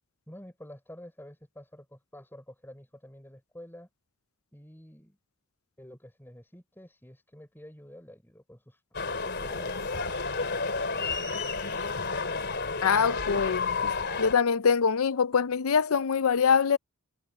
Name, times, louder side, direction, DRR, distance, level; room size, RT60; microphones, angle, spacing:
voice 1, 0.3-3.9 4.5-5.2 5.8-8.8 9.1-9.8 10.9-11.1, left 1 dB, 10° left, 5.9 m, -48 dB
sound 1, 8.9-14.3, left 4 dB, 50° left, 3.4 m, -31 dB
voice 2, 12.8-13.9 14.2-16.8, left 6 dB, 75° left, 0.6 m, -24 dB
head